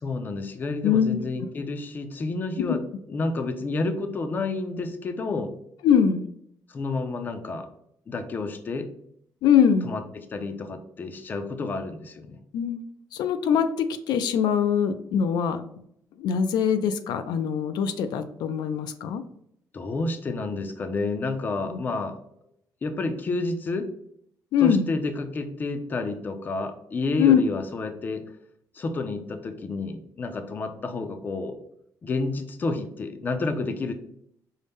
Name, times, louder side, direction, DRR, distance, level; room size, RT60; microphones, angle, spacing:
voice 1, 0.0-2.8 3.1-5.5 6.7-7.7 8.1-8.9 9.8-12.4 19.7-22.2 22.8-23.9 24.6-28.2 28.7-31.6 32.0-33.9, left 3 dB, 25° left, 8 dB, 0.4 m, -30 dB
voice 2, 0.8-1.2 2.6-2.8 5.8-6.2 9.4-9.9 12.5-12.8 13.1-13.7 14.1-15.6 16.2-19.2 21.7-21.8 24.5-24.9 27.2-27.4, left 8 dB, 90° left, 9 dB, 0.4 m, -22 dB
5.4 x 2.1 x 3.4 m, 0.70 s
cardioid pair, 165°, 7 cm